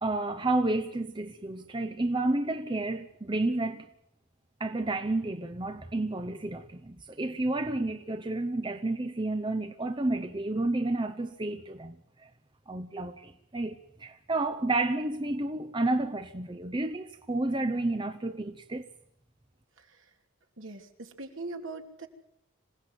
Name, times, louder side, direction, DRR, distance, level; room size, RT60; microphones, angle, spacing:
voice 1, 0.0-3.9 4.6-12.3 12.7-18.9, right 2 dB, 20° right, 0.8 m, -31 dB
voice 2, 20.6-22.1, right 3 dB, 70° right, 2.9 m, -41 dB
26.5 x 17.5 x 7.9 m
head